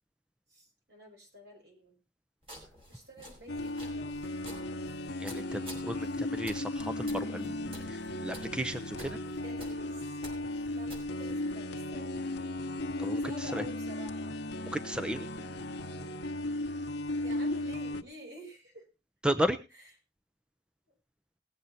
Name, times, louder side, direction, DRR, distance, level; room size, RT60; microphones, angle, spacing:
voice 1, 0.5-2.0 2.9-4.3 9.2-10.2 10.7-12.1 13.2-14.3 17.2-18.8 19.7-19.9, equal, 75° right, 0 dB, 5.7 m, -50 dB
sound 1, 2.4-11.5, equal, 30° right, 4.8 m, -51 dB
sound 2, 3.5-18.0, left 1 dB, 85° left, 0.9 m, -36 dB
voice 2, 5.2-9.2 13.0-13.6 14.7-15.3 19.2-19.6, equal, 5° right, 10 dB, 0.6 m, -34 dB
18.5 x 7.9 x 4.2 m, 0.29 s
head